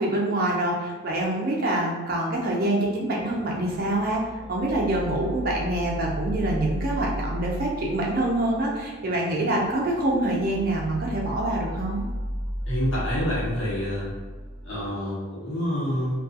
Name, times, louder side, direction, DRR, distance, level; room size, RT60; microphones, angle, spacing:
voice 1, 0.0-12.0, right 1 dB, 45° right, -2 dB, 0.4 m, -26 dB
sound 1, 3.2-14.9, equal, 15° right, 0.7 m, -35 dB
voice 2, 12.7-14.1 14.6-16.2, equal, 80° left, -7 dB, 1.0 m, -27 dB
2.3 x 2.2 x 2.6 m, 1.3 s
head